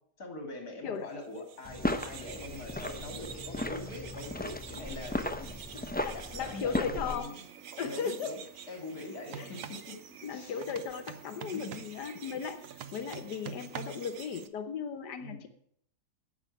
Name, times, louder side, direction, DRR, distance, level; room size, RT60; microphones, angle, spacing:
voice 1, 0.2-7.4 7.8-8.4 8.7-9.9 10.3-10.5 11.5-11.8 15.2-15.5, left 2 dB, 70° left, 4 dB, 3.0 m, -43 dB
sound 1, 1.2-14.5, right 8 dB, 60° right, 1.2 m, -49 dB
sound 2, 1.6-7.2, left 1 dB, 15° left, 0.3 m, -36 dB
voice 2, 5.7-7.2 7.8-8.3 9.4-9.5 10.2-15.5, left 6 dB, 85° left, 9 dB, 1.6 m, -37 dB
sound 3, 9.2-9.9 10.6-12.0 12.6-14.1, right 8 dB, 80° right, 1.4 m, -44 dB
9.7 x 8.4 x 9.1 m, 0.68 s
omnidirectional pair, 1.7 m